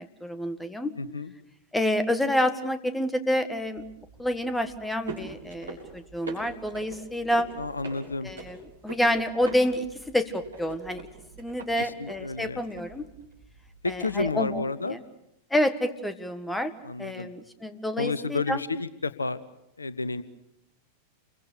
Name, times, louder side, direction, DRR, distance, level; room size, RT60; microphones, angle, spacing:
voice 1, 0.0-0.9 1.7-3.8 4.2-7.5 8.2-11.0 11.4-13.1 13.8-15.0 15.5-16.7 17.0-18.6, left 1 dB, 5° left, 11 dB, 1.7 m, -28 dB
voice 2, 1.0-1.3 7.6-8.3 11.8-12.6 13.8-15.0 16.8-17.3 18.0-19.4 19.8-20.2, left 3 dB, 80° left, 16 dB, 0.9 m, -31 dB
sound 1, 3.6-14.5, right 3 dB, 70° right, 7.0 m, -44 dB
28.5 x 23.0 x 6.8 m, 0.82 s
figure-of-eight pair, 90°, 0 cm